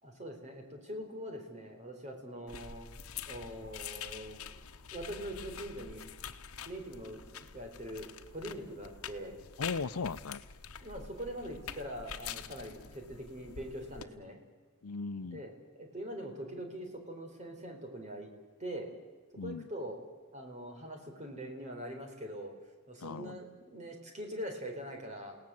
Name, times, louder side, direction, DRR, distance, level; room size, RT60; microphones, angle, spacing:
voice 1, 0.0-2.9 3.3-4.6 4.9-6.1 6.7-9.4 10.8-14.4 15.3-18.3 18.6-18.9 19.4-20.0 20.3-22.5 22.9-25.4, equal, 30° right, 3 dB, 4.3 m, -43 dB
sound 1, 2.5-14.0, left 7 dB, 75° left, 1.1 m, -46 dB
voice 2, 9.6-10.4 14.8-15.4 19.4-19.7 23.0-23.4, left 4 dB, 90° left, 15 dB, 0.7 m, -37 dB
29.5 x 18.0 x 7.8 m, 1.4 s
head